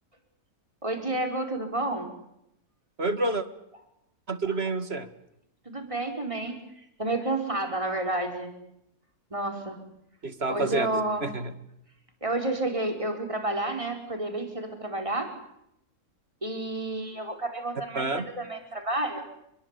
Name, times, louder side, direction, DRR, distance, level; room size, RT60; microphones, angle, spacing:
voice 1, 0.8-2.1 5.6-6.6 7.0-8.5 9.3-9.8 10.5-11.3 12.2-15.3 16.4-19.3, right 2 dB, 20° right, 5 dB, 4.9 m, -30 dB
voice 2, 3.0-3.4 4.3-5.1 10.2-11.5 18.0-18.3, right 3 dB, 45° right, 11 dB, 2.3 m, -29 dB
27.5 x 22.5 x 8.4 m, 0.80 s
omnidirectional pair, 1.6 m